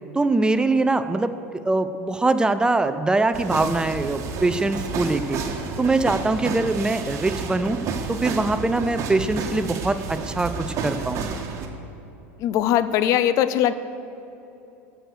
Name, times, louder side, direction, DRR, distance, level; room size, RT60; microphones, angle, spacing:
voice 1, 0.1-1.3 1.6-5.4 5.8-7.8 8.1-11.2, right 2 dB, 10° right, 11 dB, 0.5 m, -22 dB
sound 1, 3.3-11.7, right 5 dB, 45° right, 1.4 m, -31 dB
voice 2, 12.4-13.7, left 11 dB, 50° left, 13 dB, 0.5 m, -20 dB
14.0 x 6.4 x 6.4 m, 2.9 s
hypercardioid pair, 90°, 7 cm